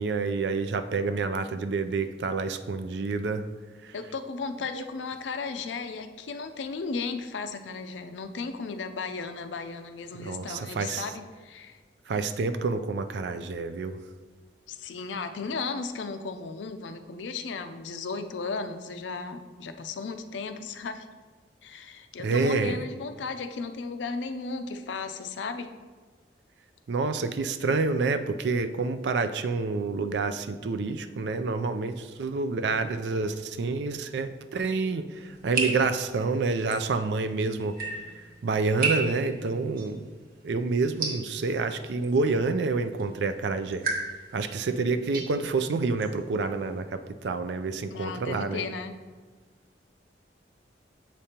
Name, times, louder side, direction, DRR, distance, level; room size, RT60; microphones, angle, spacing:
voice 1, 0.0-3.4 4.8-4.9 10.1-11.0 12.1-14.0 22.2-22.8 26.9-37.8 38.4-40.1 40.4-43.9 44.3-48.6, right 4 dB, 70° right, 10 dB, 0.4 m, -28 dB
voice 2, 3.9-11.8 14.7-21.1 21.6-25.7 47.9-49.0, left 4 dB, 85° left, 9 dB, 0.5 m, -35 dB
sound 1, 35.2-46.8, right 4 dB, 55° right, 1.0 m, -36 dB
7.3 x 5.1 x 2.9 m, 1.4 s
head